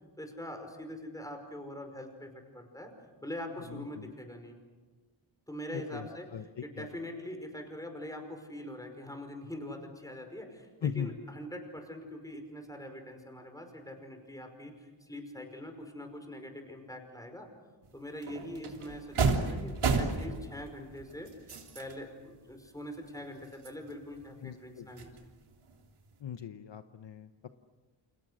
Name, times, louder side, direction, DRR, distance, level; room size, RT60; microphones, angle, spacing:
voice 1, 0.2-2.9 3.2-4.6 5.5-17.5 17.9-21.3 21.7-25.3, left 1 dB, 5° left, 5 dB, 5.2 m, -43 dB
voice 2, 3.7-4.1 5.7-6.9 10.8-11.1 24.4-24.9 26.2-27.5, left 8 dB, 60° left, 9 dB, 1.0 m, -39 dB
sound 1, 17.8-17.9 18.2-22.1 22.5-22.6 23.0-24.6 25.0-26.2, right 4 dB, 85° right, 3.3 m, -33 dB
29.5 x 28.5 x 6.5 m, 1.3 s
wide cardioid pair, 140°, 49 cm